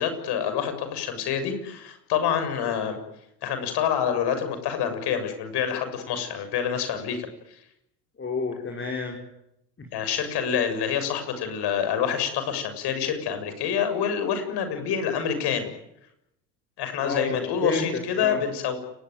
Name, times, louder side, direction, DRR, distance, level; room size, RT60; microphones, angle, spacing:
voice 1, 0.0-3.0 3.4-7.3 9.9-15.7 16.8-18.8, left 8 dB, 55° left, 9 dB, 7.2 m, -27 dB
voice 2, 8.2-9.2 9.8-9.9 17.0-18.4, left 4 dB, 25° left, 1 dB, 5.9 m, -30 dB
29.5 x 20.0 x 9.4 m, 0.83 s
hypercardioid pair, 75°, 48 cm